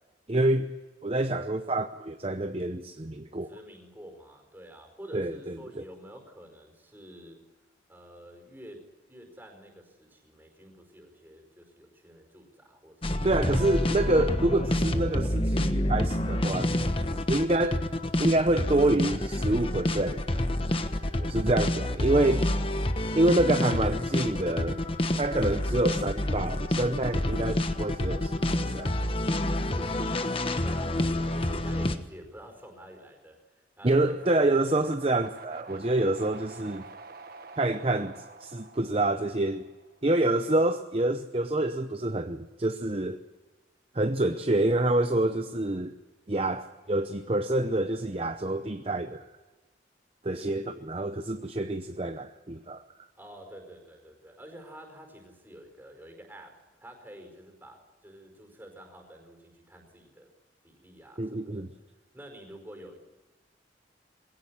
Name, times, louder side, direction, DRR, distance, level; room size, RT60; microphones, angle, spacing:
voice 1, 0.3-0.7 1.0-3.5 5.1-5.6 13.2-16.7 17.3-17.9 18.2-20.4 21.2-22.4 23.2-24.8 25.2-28.3 28.7-28.9 33.8-36.8 37.6-39.7 40.0-43.2 43.9-46.0 46.3-49.2 50.2-52.8 61.2-61.7, right 1 dB, 35° right, 0.8 m, -27 dB
voice 2, 3.4-7.4 7.9-13.1 13.4-13.6 14.1-14.5 22.1-23.5 30.6-34.8 53.2-60.3 60.6-61.7 62.1-63.0, equal, 10° right, 4.9 m, -49 dB
sound 1, 13.0-32.0, left 1 dB, 30° left, 1.2 m, -28 dB
sound 2, 34.0-40.1, right 3 dB, 55° right, 1.6 m, -48 dB
22.0 x 17.0 x 10.0 m
head